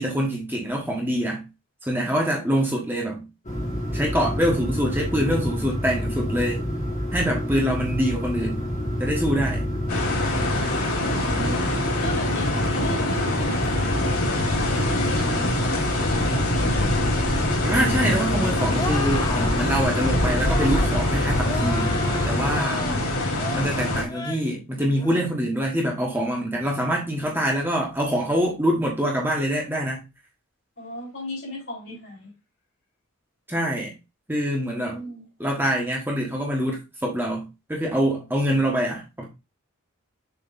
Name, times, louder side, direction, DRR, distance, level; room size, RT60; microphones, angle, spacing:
voice 1, 0.0-1.4 1.9-3.2 3.9-6.6 7.1-8.6 9.0-9.6 17.6-21.9 22.2-22.8 23.5-30.0 33.5-33.9 34.3-35.0 35.4-37.4 37.7-39.2, equal, 10° right, 1.4 m, -25 dB
sound 1, 3.4-22.6, equal, 35° left, 1.8 m, -28 dB
sound 2, 9.9-24.0, left 1 dB, 85° left, 2.5 m, -25 dB
voice 2, 11.0-11.7 12.0-15.7 16.1-16.8 22.8-23.1 30.8-32.3 34.7-35.3, left 1 dB, 50° left, 3.9 m, -36 dB
sound 3, 18.8-19.7 20.4-20.9 21.4-23.0 23.4-23.7 24.1-24.5 24.9-25.2, left 3 dB, 15° left, 0.6 m, -33 dB
7.0 x 6.2 x 2.6 m
head